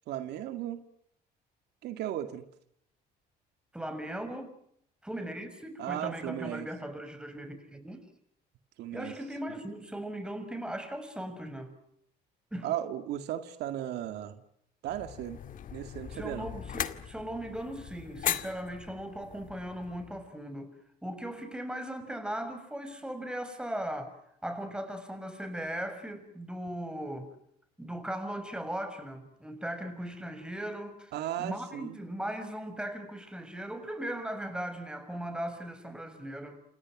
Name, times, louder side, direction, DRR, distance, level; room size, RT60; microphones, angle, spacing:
voice 1, 0.1-0.8 1.8-2.4 5.8-6.7 8.8-9.1 12.6-14.4 14.8-15.4 15.7-16.5 31.1-32.0, right 12 dB, 80° right, 2.3 m, -35 dB
voice 2, 3.7-4.5 5.0-8.1 8.9-11.7 12.5-12.8 16.1-20.7 21.0-27.3 27.8-36.6, right 1 dB, 5° right, 6.5 m, -38 dB
sound 1, 14.9-20.3, left 9 dB, 55° left, 2.1 m, -38 dB
29.5 x 27.5 x 6.2 m
cardioid pair, 110°, 17 cm